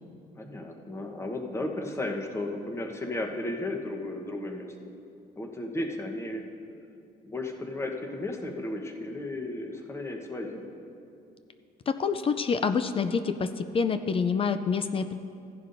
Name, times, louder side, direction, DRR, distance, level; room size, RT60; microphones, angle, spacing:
voice 1, 0.4-4.7 5.4-6.4 7.2-10.6, left 2 dB, 15° left, 2 dB, 1.1 m, -34 dB
voice 2, 11.9-15.1, left 5 dB, 35° left, 10 dB, 0.4 m, -27 dB
15.5 x 10.5 x 2.7 m, 2.6 s
cardioid pair, 110°, 17 cm